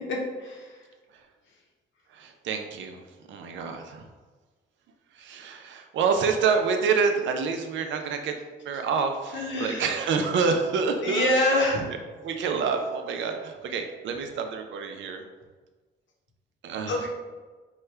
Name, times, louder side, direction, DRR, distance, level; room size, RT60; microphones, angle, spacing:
voice 1, 0.1-0.8 9.3-9.9 11.0-11.8 16.9-17.1, left 1 dB, 70° left, 0 dB, 0.9 m, -26 dB
voice 2, 2.1-3.0 3.3-4.1 5.1-8.4 8.6-11.3 11.9-12.0 12.2-15.2 16.6-16.9, right 5 dB, 70° right, 5 dB, 0.5 m, -27 dB
4.6 x 2.2 x 3.3 m, 1.3 s
cardioid pair, 90°, 20 cm